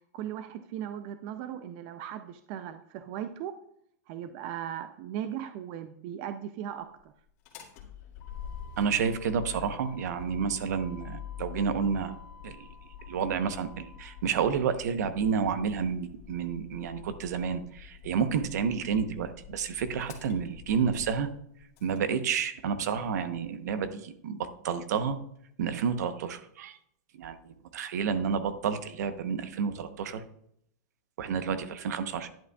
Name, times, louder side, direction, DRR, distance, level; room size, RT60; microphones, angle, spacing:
voice 1, 0.0-3.6 4.1-7.1, right 10 dB, 40° right, 10 dB, 0.4 m, -38 dB
Motor vehicle (road), 7.3-22.0, left 9 dB, 45° left, 1.9 m, -46 dB
voice 2, 8.8-12.1 12.4-12.7 13.1-21.3 21.8-25.2 25.6-26.8 27.2-30.2 31.2-32.3, right 6 dB, 75° right, 10 dB, 0.9 m, -30 dB
10.5 x 8.3 x 2.3 m, 0.71 s
supercardioid pair, 155°, 9 cm